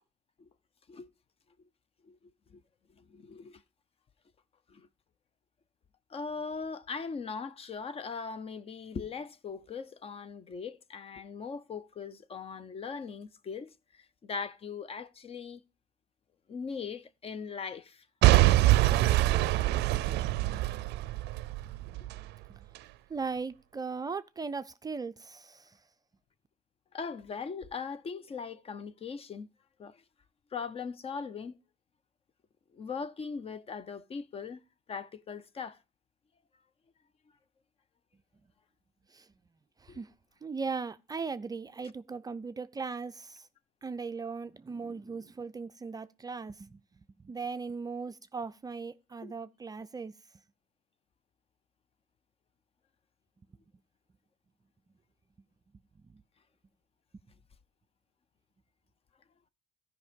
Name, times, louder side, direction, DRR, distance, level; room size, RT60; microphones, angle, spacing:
voice 1, 3.0-3.6 4.7-4.9 6.1-15.6 16.5-18.0 26.9-29.5 29.8-30.0 30.5-31.5 32.7-34.6 34.9-35.8 39.9-40.0 49.2-49.3, left 5 dB, 35° left, 0.6 m, -40 dB
Boom / Shatter / Crushing, 18.2-22.2 22.8-22.9, right 16 dB, 80° right, 0.4 m, -24 dB
voice 2, 23.1-25.8 39.1-39.3 39.8-40.1 40.4-43.5 43.8-50.1 56.0-56.2, right 4 dB, 20° right, 0.4 m, -38 dB
13.5 x 5.3 x 5.0 m
cardioid pair, 110°, 17 cm